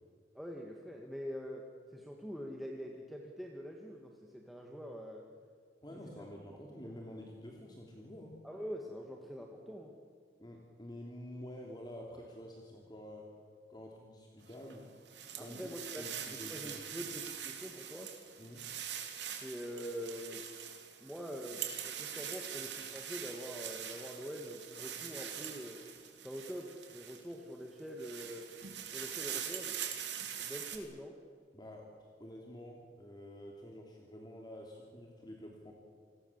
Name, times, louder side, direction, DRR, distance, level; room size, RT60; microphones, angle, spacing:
voice 1, 0.3-5.2 8.4-9.9 15.4-18.1 19.4-20.4 21.0-25.8 26.2-28.5 28.9-29.8 30.4-31.2, equal, ahead, 0 dB, 2.1 m, -44 dB
voice 2, 5.8-8.4 10.4-13.3 13.7-14.9 15.1-17.0 18.4-18.6 31.5-35.7, left 1 dB, 25° left, -1 dB, 3.0 m, -49 dB
sound 1, 14.5-27.3 27.8-30.8, right 9 dB, 75° right, 3.4 m, -43 dB
29.0 x 21.0 x 7.4 m, 2.1 s
head